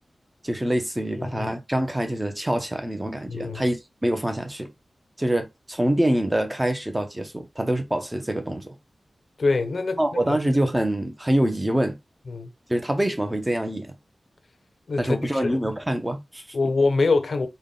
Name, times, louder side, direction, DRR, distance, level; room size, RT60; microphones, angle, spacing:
voice 1, 0.4-3.8 4.0-4.7 5.2-8.8 10.0-12.0 12.7-13.9 15.0-16.4, right 1 dB, 15° right, 0.7 m, -25 dB
voice 2, 1.2-1.5 3.3-3.6 9.4-10.0 10.3-10.4 12.3-12.5 14.9-15.6 16.5-17.5, left 3 dB, 60° left, 0.5 m, -24 dB
3.5 x 2.2 x 3.7 m
wide cardioid pair, 120°, 0 cm